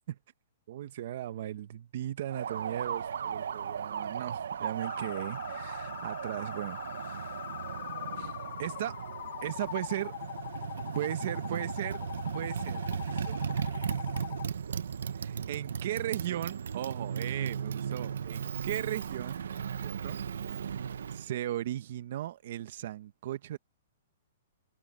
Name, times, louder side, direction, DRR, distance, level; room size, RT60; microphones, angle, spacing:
voice 1, 0.7-8.3 8.6-9.0 9.4-10.2 10.9-12.0 12.3-13.4 15.2-19.5 19.8-20.2 21.1-23.6, right 12 dB, 50° right, 1.1 m, -37 dB
Motorcycle, 2.3-21.3, right 7 dB, 85° right, 0.8 m, -36 dB
sound 1, 4.8-14.5, left 13 dB, 50° left, 2.6 m, -42 dB
hypercardioid pair, 165°, 0 cm